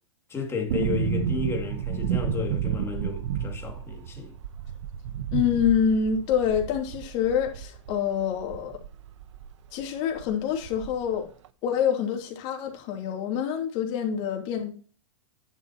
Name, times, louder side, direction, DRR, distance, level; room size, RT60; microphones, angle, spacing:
voice 1, 0.3-4.4, left 5 dB, 15° left, 2.3 m, -32 dB
sound 1, 0.7-9.5 9.8-9.9 10.2-11.2 11.4-11.5, right 9 dB, 70° right, 0.9 m, -31 dB
voice 2, 5.3-8.8 9.7-11.3 11.6-14.7, left 8 dB, 45° left, 2.9 m, -26 dB
10.5 x 7.2 x 2.9 m
hypercardioid pair, 135°, 16 cm